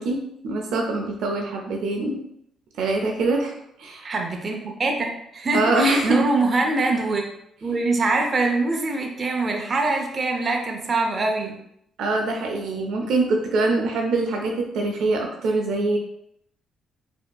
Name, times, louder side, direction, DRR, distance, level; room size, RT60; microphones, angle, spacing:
voice 1, 0.0-2.1 2.8-3.5 3.8-4.1 5.5-6.3 6.9-7.0 12.0-16.0, right 2 dB, 80° right, 2 dB, 0.5 m, -24 dB
voice 2, 4.0-7.3 7.6-11.6, right 3 dB, 40° right, 2 dB, 0.7 m, -23 dB
4.3 x 2.8 x 2.3 m, 0.73 s
cardioid pair, 90°, 0 cm